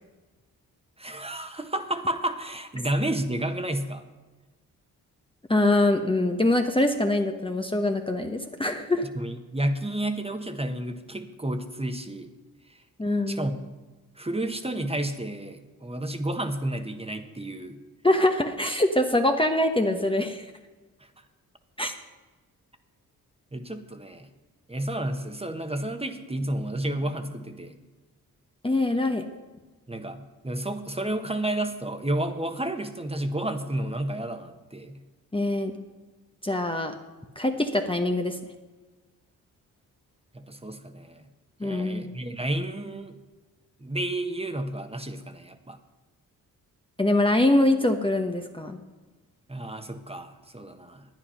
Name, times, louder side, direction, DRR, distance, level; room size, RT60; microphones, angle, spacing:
voice 1, 1.0-4.0 9.1-12.3 12.7-12.8 13.3-13.5 14.2-17.8 23.5-24.3 24.7-27.8 29.9-35.0 40.3-41.2 41.6-43.2 43.8-45.8 49.5-51.0, right 1 dB, 15° right, 7 dB, 1.3 m, -31 dB
voice 2, 5.5-9.1 13.0-13.5 18.0-20.5 21.8-21.9 28.6-29.2 35.3-35.7 36.4-36.9 37.4-38.4 41.6-42.1 47.0-48.8, left 1 dB, 15° left, 4 dB, 1.0 m, -24 dB
10.5 x 9.6 x 5.7 m, 1.2 s
supercardioid pair, 50°, 38 cm